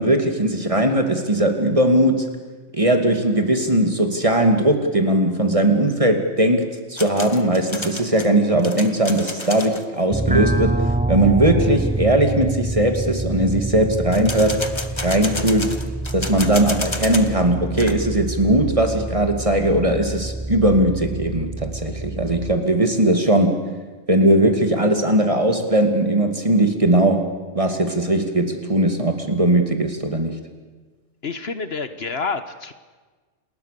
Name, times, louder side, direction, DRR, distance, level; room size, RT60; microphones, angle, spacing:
voice 1, 0.0-2.3 2.7-14.6 15.0-15.7 16.1-23.6 24.1-27.2 27.5-30.3, right 1 dB, 25° right, 5 dB, 2.6 m, -19 dB
sound 1, 7.0-9.8 14.1-17.3 17.6-17.9, left 2 dB, 25° left, 1.5 m, -31 dB
sound 2, 10.1-22.6, right 2 dB, 10° right, 0.4 m, -27 dB
voice 2, 31.2-32.7, left 4 dB, 60° left, 10 dB, 1.4 m, -28 dB
29.0 x 20.5 x 6.9 m, 1.3 s
omnidirectional pair, 1.2 m